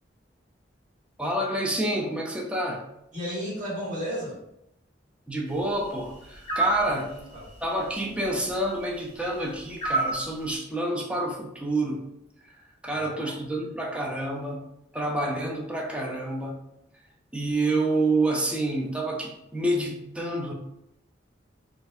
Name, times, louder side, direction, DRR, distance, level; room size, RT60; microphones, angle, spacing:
voice 1, 1.2-2.8 5.3-7.1 7.6-12.0 12.8-16.6 17.3-20.5, right 1 dB, 5° right, -1 dB, 0.5 m, -28 dB
voice 2, 3.1-4.4 7.3-7.4 12.8-13.4, equal, 45° right, -6 dB, 1.5 m, -33 dB
sound 1, 6.5-6.9 9.8-10.2, right 3 dB, 30° left, 1.0 m, -25 dB
4.2 x 2.5 x 2.6 m, 0.83 s
head